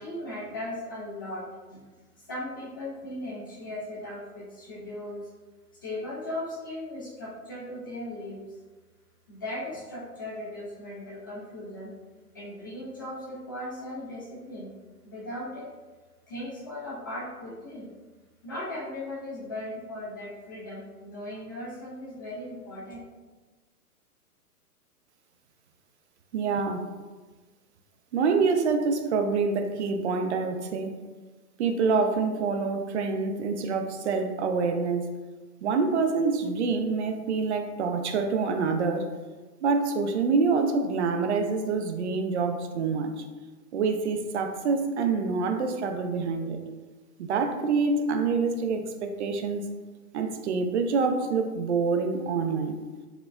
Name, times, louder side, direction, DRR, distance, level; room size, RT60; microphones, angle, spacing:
voice 1, 0.0-1.8 2.2-5.3 5.8-8.4 9.3-11.9 12.3-14.7 15.0-15.7 16.3-17.9 18.4-23.0, left 1 dB, 15° left, -8 dB, 0.3 m, -37 dB
voice 2, 26.3-26.9 28.1-31.0 31.6-35.1 35.6-39.1 39.6-43.2 43.7-46.6 47.2-49.7 50.1-52.8, right 4 dB, 50° right, 6 dB, 0.4 m, -26 dB
4.8 x 2.2 x 2.4 m, 1.3 s
hypercardioid pair, 130°, 46 cm